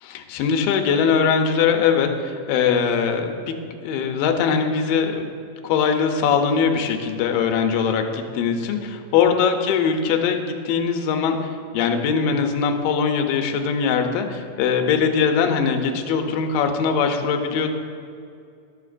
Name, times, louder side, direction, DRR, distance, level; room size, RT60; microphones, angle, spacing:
voice 1, 0.0-3.4 3.8-5.3 5.6-17.7, left 6 dB, 80° left, 4 dB, 2.2 m, -21 dB
12.0 x 7.0 x 2.4 m, 2.3 s
omnidirectional pair, 4.3 m